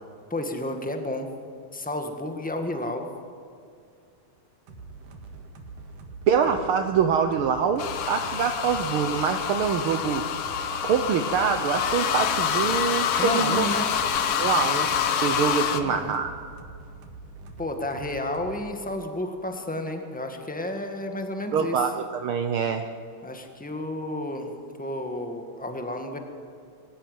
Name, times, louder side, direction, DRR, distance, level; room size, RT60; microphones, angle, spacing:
voice 1, 0.3-1.3 1.7-3.0 13.2-13.9 15.7-16.1 17.6-21.8 23.2-24.5 24.8-26.2, left 1 dB, 5° left, 5 dB, 0.7 m, -31 dB
sound 1, 4.7-18.8, right 3 dB, 90° right, 3.4 m, -44 dB
voice 2, 6.3-10.2 10.8-13.7 14.4-14.9 15.2-16.3 21.5-22.8, right 6 dB, 75° right, 6 dB, 1.2 m, -25 dB
sound 2, 7.8-15.8, left 8 dB, 60° left, 1.7 m, -26 dB
23.5 x 15.0 x 9.3 m, 2.3 s
omnidirectional pair, 3.5 m